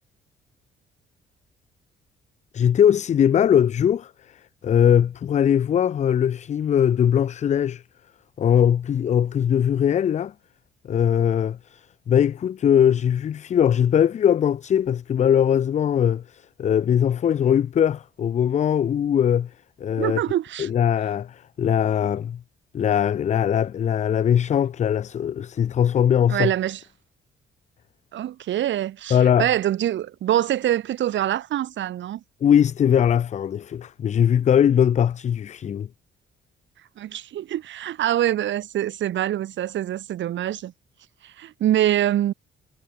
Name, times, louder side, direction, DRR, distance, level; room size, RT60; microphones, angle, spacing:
voice 1, 2.5-7.8 8.4-10.3 10.8-19.5 19.8-20.2 20.6-22.4 22.7-26.5 29.1-29.5 32.4-35.9, left 9 dB, 35° left, 0.4 m, -20 dB
voice 2, 20.0-20.7 26.3-26.8 28.1-32.2 36.8-40.7 41.2-42.3, right 12 dB, 70° right, 1.3 m, -25 dB
cardioid pair, 90°, 20 cm